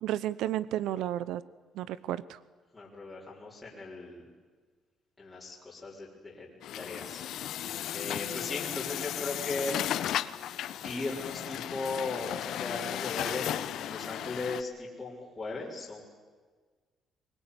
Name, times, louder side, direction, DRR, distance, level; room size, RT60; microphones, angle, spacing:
voice 1, 0.0-1.4 1.8-2.4, right 12 dB, 90° right, 18 dB, 0.8 m, -32 dB
voice 2, 2.7-4.2 5.2-7.6 7.9-10.0 10.8-16.0, left 3 dB, 10° left, -6 dB, 4.7 m, -38 dB
Truck, 6.6-14.6, left 11 dB, 60° left, 1.0 m, -35 dB
24.0 x 20.5 x 9.8 m, 1.4 s
cardioid pair, 175°, 0 cm